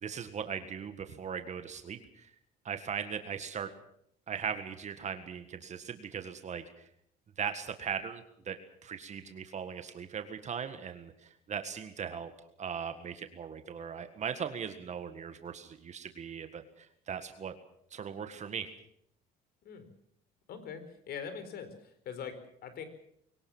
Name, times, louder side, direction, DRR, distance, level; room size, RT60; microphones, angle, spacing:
voice 1, 0.0-2.3 2.6-3.7 4.3-6.9 7.4-12.3 12.6-17.5 17.9-18.7, right 7 dB, 45° right, 8 dB, 1.7 m, -39 dB
voice 2, 20.5-22.8, left 7 dB, 65° left, 11 dB, 4.6 m, -42 dB
23.0 x 18.5 x 7.2 m, 0.71 s
cardioid pair, 110°, 17 cm